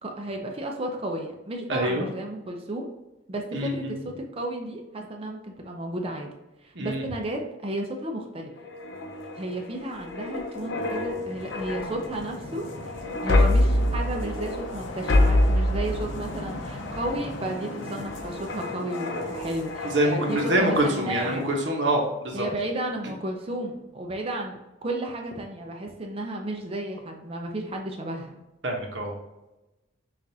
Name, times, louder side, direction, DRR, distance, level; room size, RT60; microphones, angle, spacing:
voice 1, 0.0-2.9 3.3-6.3 6.6-8.5 9.4-12.9 13.2-21.5 22.3-28.4, right 1 dB, 30° right, 2 dB, 0.5 m, -33 dB
voice 2, 1.7-2.1 3.5-4.0 6.7-7.0 19.8-22.4 23.0-23.1 28.6-29.2, right 1 dB, 70° right, 1 dB, 1.0 m, -25 dB
sound 1, 8.6-20.9 21.3-21.5, left 1 dB, 80° left, 0.7 m, -27 dB
5.9 x 2.5 x 2.7 m, 1.0 s
head